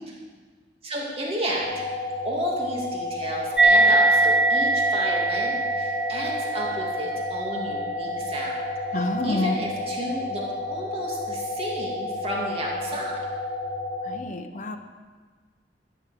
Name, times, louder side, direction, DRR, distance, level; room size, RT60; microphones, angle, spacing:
voice 1, 0.8-1.7 2.2-8.6 8.9-13.2, right 1 dB, 35° right, -3 dB, 2.6 m, -32 dB
sound 1, 1.6-14.2, left 2 dB, 65° left, 2.4 m, -31 dB
sound 2, 3.6-10.5, right 2 dB, 5° right, 0.8 m, -24 dB
voice 2, 8.9-9.5 14.0-14.8, left 2 dB, 45° left, 5 dB, 0.9 m, -28 dB
13.0 x 8.0 x 7.8 m, 1.5 s
head